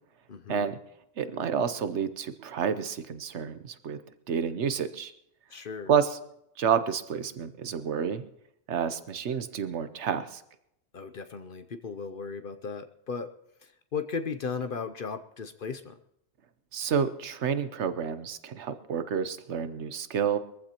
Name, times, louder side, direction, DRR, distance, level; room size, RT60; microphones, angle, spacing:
voice 1, 0.3-0.7 5.5-5.9 10.9-13.3 13.6-16.0, left 5 dB, 50° left, 9 dB, 0.8 m, -36 dB
voice 2, 1.2-4.0 4.3-5.1 5.9-6.2 6.6-8.2 8.7-10.4 16.7-20.4, right 7 dB, 65° right, 11 dB, 1.1 m, -29 dB
22.5 x 15.0 x 2.9 m, 0.79 s
omnidirectional pair, 1.3 m